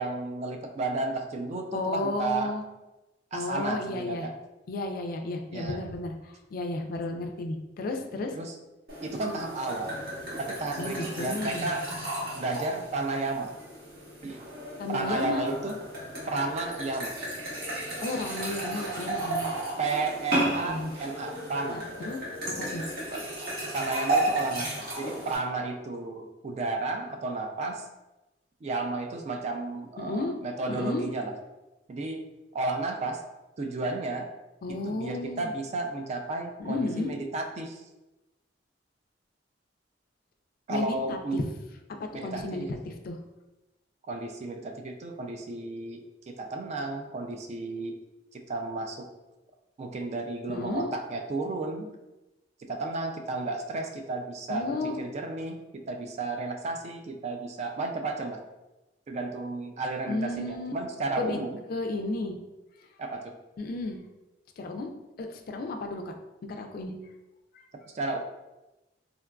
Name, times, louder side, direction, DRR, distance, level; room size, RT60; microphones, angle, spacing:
voice 1, 0.0-2.5 3.3-4.4 5.5-5.8 8.3-8.5 9.0-10.0 10.4-11.9 12.3-13.6 14.2-14.4 14.9-15.7 16.3-17.1 19.8-22.1 23.1-23.2 23.7-27.9 28.6-31.3 31.9-32.2 32.5-33.2 33.6-34.3 34.8-37.8 40.7-41.4 42.1-42.7 44.1-46.0 46.3-48.0 48.3-49.1 49.8-51.9 52.6-58.4 59.1-61.6 63.0-63.3 67.9-68.2, right 3 dB, 35° right, 4 dB, 0.3 m, -33 dB
voice 2, 1.7-2.6 3.3-4.3 4.7-8.3 10.8-11.7 14.8-15.4 18.0-19.5 20.6-20.9 21.7-22.2 22.4-22.9 30.0-30.4 30.7-31.1 34.6-35.5 36.6-37.1 40.7-41.4 42.0-43.2 50.5-50.9 54.5-55.0 60.1-60.7 61.2-61.4 61.7-62.3 63.6-64.0 64.6-64.9 65.2-66.1 66.4-66.9 67.5-67.6, left 2 dB, 50° left, 4 dB, 0.3 m, -33 dB
sound 1, 8.9-25.4, right 1 dB, 55° right, 1.1 m, -34 dB
3.7 x 2.4 x 2.2 m, 1.0 s
head